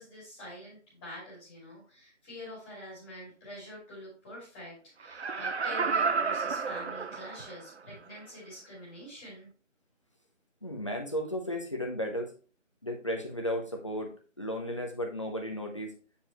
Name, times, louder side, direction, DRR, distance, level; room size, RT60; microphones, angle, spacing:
voice 1, 0.0-9.5, left 1 dB, 10° left, -7 dB, 2.3 m, -45 dB
Laughter, 5.0-7.7 8.2-8.3, right 5 dB, 60° right, 0.6 m, -31 dB
voice 2, 10.6-12.3 12.8-16.0, equal, 25° left, 1 dB, 0.8 m, -34 dB
8.3 x 4.9 x 2.9 m, 0.37 s
figure-of-eight pair, 165°, 38 cm